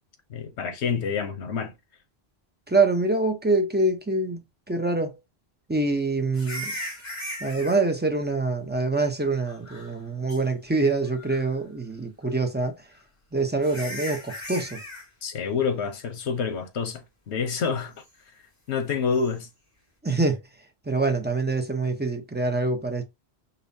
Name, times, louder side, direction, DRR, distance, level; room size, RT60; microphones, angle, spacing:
voice 1, 0.3-1.7 15.2-17.9 18.7-19.5, left 5 dB, 85° left, 1.1 m, -28 dB
voice 2, 2.7-4.4 4.7-5.2 5.7-6.7 7.4-12.7 13.3-14.8 20.0-20.4 20.9-23.0, right 3 dB, 15° right, 0.4 m, -25 dB
sound 1, 6.3-7.8 9.5-10.0 10.3-10.4 11.1-11.6 12.9-13.0 13.6-15.1 19.1-19.3, left 1 dB, 55° left, 2.1 m, -37 dB
5.4 x 2.0 x 2.6 m
omnidirectional pair, 1.1 m